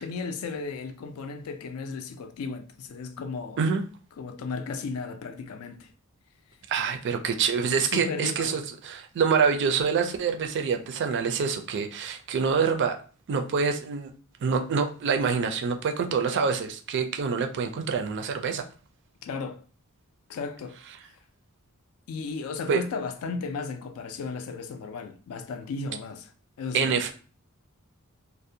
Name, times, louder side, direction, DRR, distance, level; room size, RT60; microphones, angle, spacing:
voice 1, 0.0-3.6 4.2-5.9 7.9-8.6 19.2-19.6 20.3-20.8 21.0-21.1 22.1-26.3 26.6-27.0, left 4 dB, 70° left, 0.4 m, -35 dB
voice 2, 6.7-13.0 13.3-14.1 14.4-18.6 22.7-22.8 26.7-27.1, right 5 dB, 55° right, 0.4 m, -26 dB
2.5 x 2.0 x 2.6 m
head